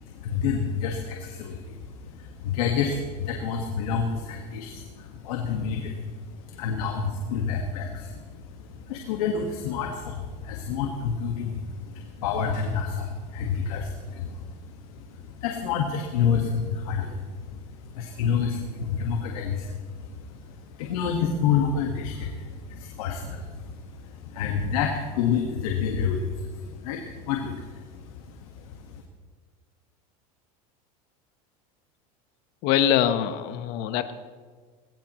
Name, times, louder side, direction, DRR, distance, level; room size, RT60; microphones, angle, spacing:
voice 1, 0.0-29.0, left 6 dB, 80° left, 2 dB, 1.7 m, -29 dB
voice 2, 32.6-34.1, left 10 dB, 60° left, 10 dB, 1.2 m, -23 dB
19.5 x 17.5 x 3.1 m, 1.5 s
supercardioid pair, 110°, 18 cm